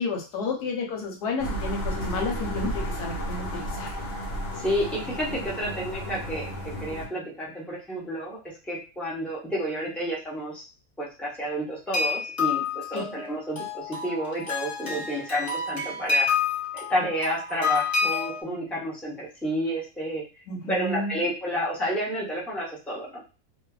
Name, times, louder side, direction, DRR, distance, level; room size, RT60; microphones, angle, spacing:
voice 1, 0.0-4.0 12.9-13.2 20.5-21.2, left 3 dB, 80° left, 1 dB, 1.3 m, -31 dB
sound 1, 1.4-7.1, equal, 60° left, 1.1 m, -33 dB
voice 2, 4.5-8.4 8.6-10.6 11.0-16.3 16.7-20.2 20.6-23.2, equal, ahead, -5 dB, 0.4 m, -30 dB
sound 2, 11.9-18.4, left 5 dB, 25° left, 1.0 m, -28 dB
2.6 x 2.6 x 2.3 m, 0.34 s
omnidirectional pair, 1.7 m